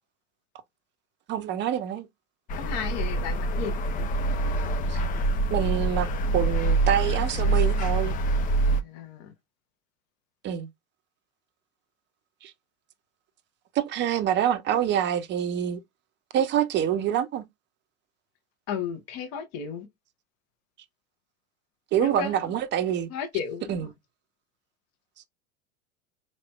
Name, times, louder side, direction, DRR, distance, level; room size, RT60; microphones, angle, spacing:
voice 1, 1.3-2.1 4.9-5.0 5.5-6.1 6.3-8.2 10.4-10.7 12.4-12.5 13.7-15.8 16.3-17.4 21.9-23.1 23.7-23.9, right 10 dB, 30° right, 0.6 m, -26 dB
sound 1, 2.5-8.8, right 2 dB, 25° left, 0.4 m, -25 dB
voice 2, 2.6-3.7 8.6-9.3 18.7-19.9 22.0-22.5 23.1-23.9, left 7 dB, 45° left, 1.1 m, -34 dB
4.2 x 3.2 x 2.2 m
figure-of-eight pair, 85°, 38 cm